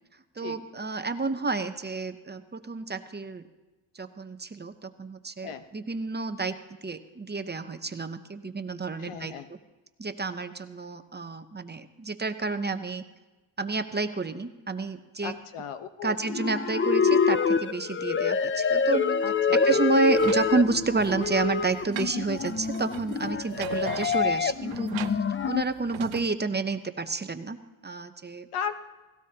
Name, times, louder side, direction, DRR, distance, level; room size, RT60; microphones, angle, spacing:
voice 1, 0.4-3.5 3.9-9.6 10.0-13.0 13.6-15.4 16.0-19.0 19.5-25.0 25.5-27.6 27.8-28.5, right 3 dB, 20° right, 9 dB, 0.8 m, -30 dB
voice 2, 9.0-9.5 15.2-16.3 19.2-19.6 28.5-28.7, left 7 dB, 85° left, 9 dB, 1.1 m, -36 dB
sound 1, 16.2-25.6, left 5 dB, 25° left, 0.5 m, -26 dB
sound 2, 20.1-26.3, right 13 dB, 65° right, 0.7 m, -42 dB
18.0 x 17.0 x 2.9 m, 1.2 s
cardioid pair, 90°, 49 cm